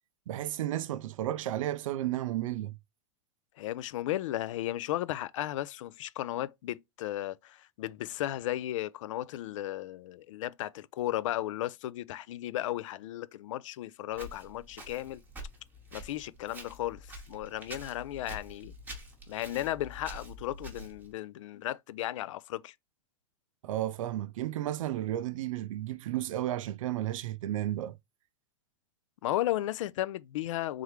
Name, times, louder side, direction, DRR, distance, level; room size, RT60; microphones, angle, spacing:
voice 1, 0.3-2.8 23.6-28.0, right 13 dB, 80° right, 0.4 m, -33 dB
voice 2, 3.6-15.2 15.9-18.7 19.3-22.7 29.2-30.8, left 14 dB, 75° left, 0.4 m, -35 dB
Walk footsteps, 14.1-21.1, equal, 10° right, 0.9 m, -47 dB
3.7 x 3.1 x 3.1 m
supercardioid pair, 150°, 17 cm